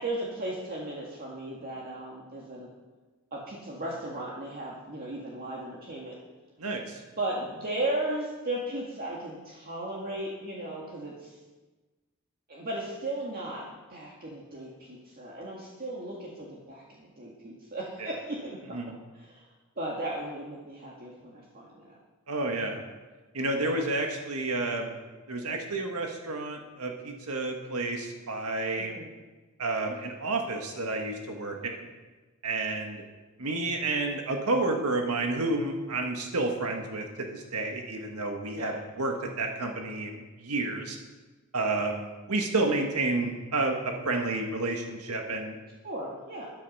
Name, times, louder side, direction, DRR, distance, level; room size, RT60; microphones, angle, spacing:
voice 1, 0.0-2.7 3.3-6.1 7.2-11.3 12.5-18.8 19.1-19.5 19.8-21.9 23.5-23.8 28.8-29.1 38.5-38.7 45.8-46.5, right 1 dB, 45° right, -3 dB, 1.9 m, -36 dB
voice 2, 6.6-7.0 18.0-18.1 18.7-18.9 22.3-22.8 23.3-24.9 25.3-28.9 29.6-31.9 32.4-33.0 33.4-41.0 41.5-45.6, right 2 dB, 85° right, 3 dB, 1.6 m, -30 dB
13.0 x 11.5 x 5.5 m, 1.2 s
head